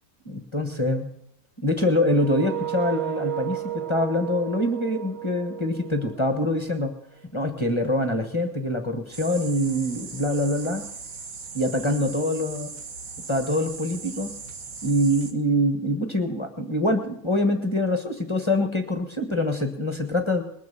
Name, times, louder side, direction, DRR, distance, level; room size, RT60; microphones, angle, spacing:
voice 1, 0.2-1.1 1.6-6.9 7.3-10.8 11.5-12.7 13.3-14.3 14.8-20.4, left 1 dB, 20° left, 5 dB, 1.3 m, -25 dB
sound 1, 2.1-7.0, right 14 dB, 50° right, 1.0 m, -33 dB
sound 2, 9.1-15.3, right 5 dB, 65° right, 1.7 m, -39 dB
21.0 x 7.9 x 6.8 m, 0.78 s
omnidirectional pair, 1.6 m